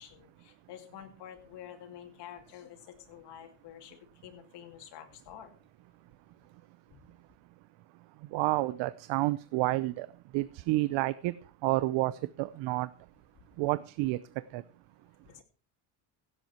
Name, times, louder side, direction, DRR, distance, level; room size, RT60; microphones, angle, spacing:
voice 1, 0.0-5.5 6.9-7.0 15.3-15.4, left 10 dB, 65° left, 5 dB, 2.7 m, -49 dB
voice 2, 8.3-10.1 10.3-11.3 11.6-12.1 12.4-12.9 13.6-14.2 14.5-14.6, right 19 dB, 75° right, 16 dB, 0.7 m, -29 dB
16.0 x 7.9 x 4.4 m, 0.38 s
cardioid pair, 130°, 45 cm